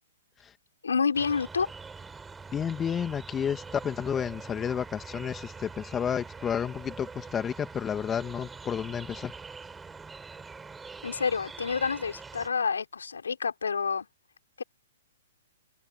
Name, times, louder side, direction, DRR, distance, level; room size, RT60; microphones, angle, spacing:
voice 1, 0.8-1.7 11.0-14.1 14.6-14.7, left 5 dB, 80° left, 4.1 m, -28 dB
sound 1, 1.1-12.5, right 4 dB, 10° right, 3.9 m, -44 dB
voice 2, 2.5-9.3, left 8 dB, 20° left, 1.9 m, -31 dB
figure-of-eight pair, 120°, 0 cm